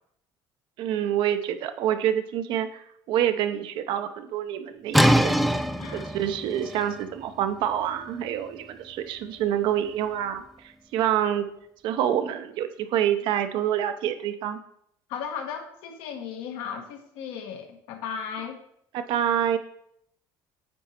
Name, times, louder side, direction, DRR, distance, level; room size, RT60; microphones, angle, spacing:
voice 1, 0.8-5.5 5.9-11.5 11.8-14.6 18.9-19.6, right 10 dB, 70° right, 9 dB, 0.7 m, -27 dB
sound 1, 4.9-10.6, equal, ahead, 0.4 m, -26 dB
voice 2, 5.8-6.1 15.1-18.6, left 7 dB, 80° left, 4 dB, 1.3 m, -36 dB
8.9 x 4.0 x 4.4 m, 0.71 s
cardioid pair, 125°, 9 cm